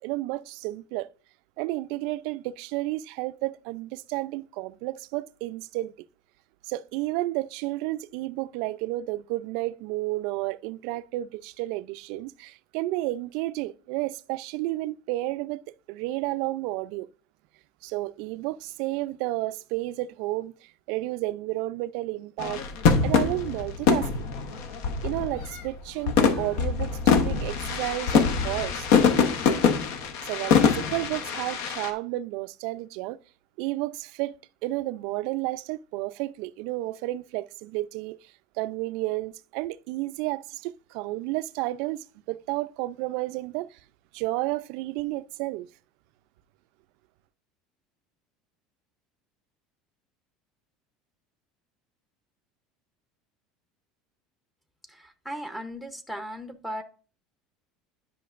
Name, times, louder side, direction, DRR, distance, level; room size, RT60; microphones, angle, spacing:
voice 1, 0.0-1.1 1.6-5.9 6.6-15.6 15.9-17.1 17.8-22.6 23.0-24.3 25.0-29.1 30.3-33.2 33.6-34.4 34.6-38.2 38.6-43.8 44.1-45.7, right 18 dB, 65° right, 0.4 m, -31 dB
sound 1, 22.4-25.7 26.1-31.9, left 6 dB, 70° left, 0.9 m, -24 dB
voice 2, 54.9-56.8, equal, 5° left, 0.7 m, -37 dB
10.5 x 5.8 x 2.5 m
cardioid pair, 150°, 0 cm